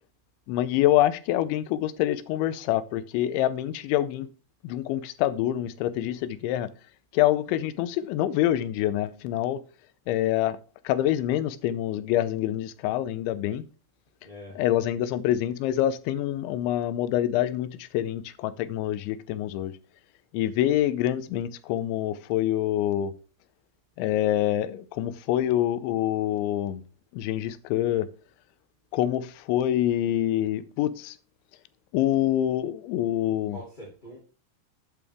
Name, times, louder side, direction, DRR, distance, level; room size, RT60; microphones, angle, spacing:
voice 1, 0.5-4.3 4.6-6.7 7.1-9.6 10.1-10.6 10.8-13.6 14.6-19.7 20.3-23.1 24.0-26.8 27.1-28.1 28.9-31.2 31.9-33.6, left 12 dB, 90° left, 3.2 m, -26 dB
voice 2, 14.2-14.6 33.3-34.2, equal, 10° left, 2.8 m, -44 dB
12.0 x 8.9 x 3.5 m
omnidirectional pair, 5.2 m